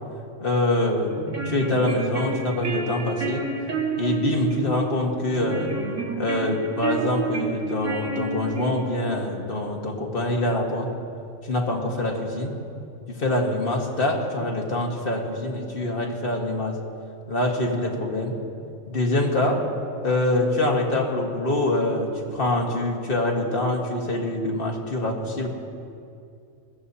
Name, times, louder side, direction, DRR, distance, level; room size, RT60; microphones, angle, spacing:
voice 1, 0.4-1.2 1.4-3.5 4.0-5.7 6.2-10.9 11.4-12.6 13.1-16.8 17.3-18.4 18.9-19.7 20.0-25.5, left 1 dB, 45° left, 0 dB, 1.8 m, -25 dB
sound 1, 1.1-9.1, right 3 dB, 70° right, 1.9 m, -30 dB
21.5 x 15.5 x 2.8 m, 2.5 s
omnidirectional pair, 1.4 m